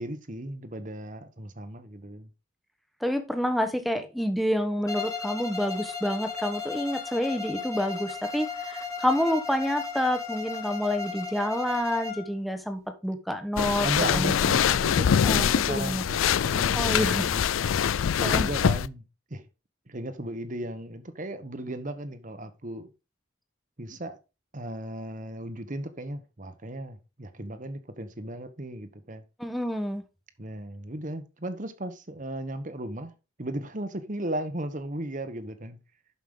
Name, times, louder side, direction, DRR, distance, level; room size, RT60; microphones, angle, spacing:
voice 1, 0.0-2.3 13.8-17.4 18.2-19.0 19.3-19.4 19.9-22.9 23.8-24.2 24.5-29.2 30.4-33.1 33.4-35.8, right 1 dB, 40° right, 1.2 m, -36 dB
voice 2, 3.0-14.5 15.2-16.0 16.7-17.2 18.2-18.5 29.4-30.0, equal, ahead, 1.1 m, -28 dB
Bowed string instrument, 4.9-12.3, left 5 dB, 15° left, 1.4 m, -35 dB
sound 1, 13.6-18.9, left 8 dB, 85° left, 0.4 m, -24 dB
11.5 x 5.6 x 3.7 m
head